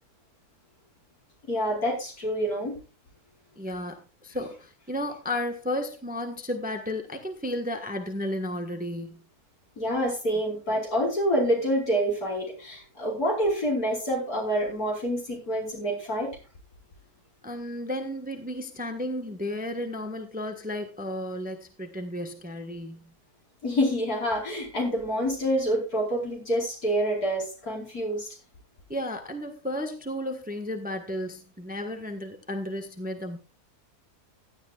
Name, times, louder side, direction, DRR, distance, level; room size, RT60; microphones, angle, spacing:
voice 1, 1.5-2.8 9.8-16.4 23.6-28.3, equal, 65° left, -1 dB, 5.3 m, -27 dB
voice 2, 3.6-9.2 17.4-23.1 28.9-33.4, left 1 dB, 5° right, 5 dB, 1.2 m, -33 dB
16.5 x 11.5 x 2.4 m, 0.31 s
omnidirectional pair, 1.7 m